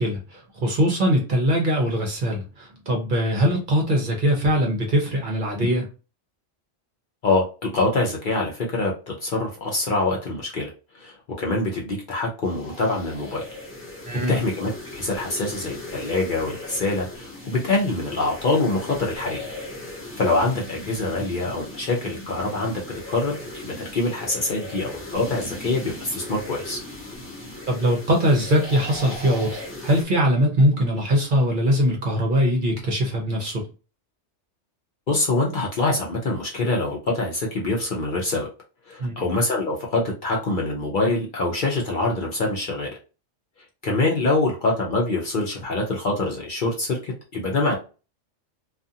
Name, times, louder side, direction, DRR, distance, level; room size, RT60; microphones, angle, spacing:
voice 1, 0.0-5.9 14.0-14.4 27.7-33.6 39.0-39.1, equal, 50° right, 0.8 m, -22 dB
voice 2, 7.7-10.7 10.9-13.5 14.3-19.4 20.2-22.8 23.1-26.8 35.1-38.5 38.9-42.9 43.8-47.8, left 2 dB, 50° left, 0.7 m, -25 dB
sound 1, 12.4-30.0, left 2 dB, 10° left, 0.9 m, -38 dB
2.5 x 2.4 x 2.6 m
omnidirectional pair, 1.2 m